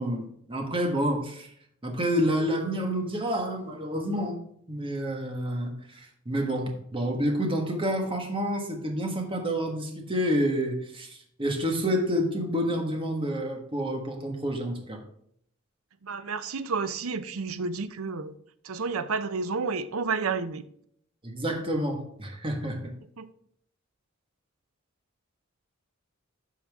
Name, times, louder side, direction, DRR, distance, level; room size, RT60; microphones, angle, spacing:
voice 1, 0.0-1.5 1.8-4.4 4.7-15.0 21.2-22.9, equal, 25° right, 1.5 m, -29 dB
voice 2, 16.0-18.3 18.6-20.6 23.2-23.3, right 4 dB, 80° right, 0.6 m, -30 dB
11.0 x 5.7 x 3.6 m
head